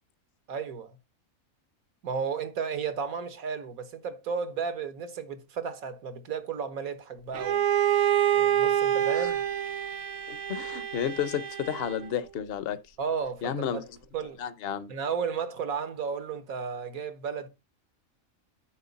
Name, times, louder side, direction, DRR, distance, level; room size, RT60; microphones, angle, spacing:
voice 1, 0.5-1.0 2.0-7.6 8.3-9.4 13.0-13.8 14.1-14.4 14.9-17.5, right 6 dB, 75° right, 1.7 m, -33 dB
Bowed string instrument, 7.3-12.2, right 10 dB, 60° right, 1.1 m, -27 dB
voice 2, 10.3-12.8 13.4-13.8 14.4-14.9, left 9 dB, 50° left, 0.9 m, -32 dB
9.5 x 6.3 x 4.0 m
omnidirectional pair, 1.5 m